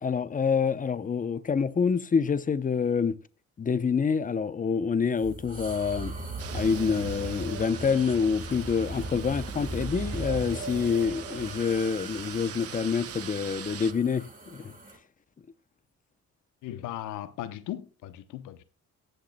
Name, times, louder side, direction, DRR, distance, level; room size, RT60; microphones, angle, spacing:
voice 1, 0.0-3.2 3.6-6.1 6.5-14.7, left 6 dB, 25° left, 0.7 m, -27 dB
sound 1, 5.2-15.0, right 2 dB, 25° right, 2.5 m, -38 dB
sound 2, 6.4-13.9, right 9 dB, 50° right, 0.7 m, -42 dB
voice 2, 16.6-18.6, left 12 dB, 90° left, 0.9 m, -37 dB
19.0 x 6.7 x 2.2 m
cardioid pair, 90°, 30 cm